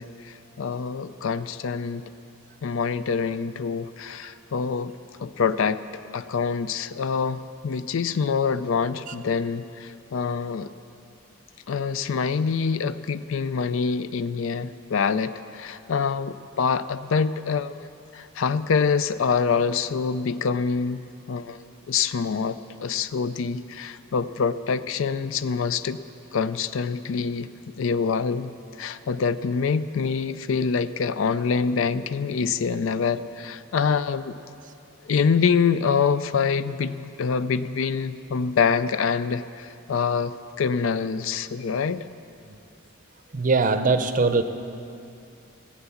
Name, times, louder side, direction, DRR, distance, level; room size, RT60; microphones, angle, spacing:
voice 1, 0.0-2.0 2.6-5.8 6.1-10.7 11.7-21.0 21.3-26.0 26.3-27.5 27.8-28.5 28.8-34.4 35.1-42.1, left 5 dB, 70° left, 14 dB, 0.4 m, -25 dB
voice 2, 43.3-44.4, right 3 dB, 40° right, 10 dB, 0.6 m, -21 dB
16.5 x 7.9 x 7.1 m, 2.7 s
head